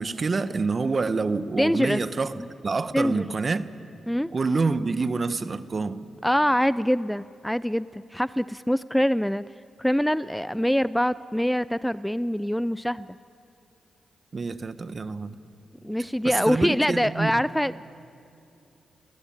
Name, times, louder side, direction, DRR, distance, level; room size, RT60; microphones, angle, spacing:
voice 1, 0.0-3.7 4.3-6.0 14.3-15.4 16.2-17.3, right 4 dB, 45° right, 12 dB, 1.2 m, -27 dB
voice 2, 1.6-2.0 2.4-2.5 2.9-3.2 4.1-4.3 6.2-9.4 9.8-13.1 15.8-17.9, equal, 5° left, 16 dB, 0.5 m, -24 dB
28.5 x 19.5 x 8.9 m, 2.6 s
supercardioid pair, 50°, 0 cm